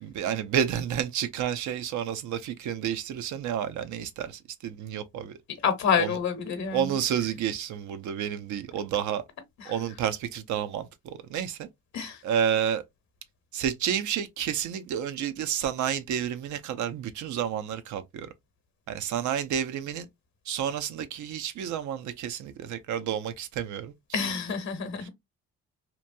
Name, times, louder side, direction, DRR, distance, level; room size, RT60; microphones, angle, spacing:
voice 1, 0.0-5.4 6.0-6.2 6.7-9.2 9.6-11.7 12.2-12.8 13.5-18.3 18.9-20.1 20.5-23.9 25.0-25.1, right 9 dB, 75° right, 0.6 m, -30 dB
voice 2, 5.6-7.0 9.6-9.7 11.9-12.2 24.1-25.1, left 6 dB, 65° left, 0.9 m, -28 dB
3.0 x 2.2 x 2.5 m
cardioid pair, 90°, 30 cm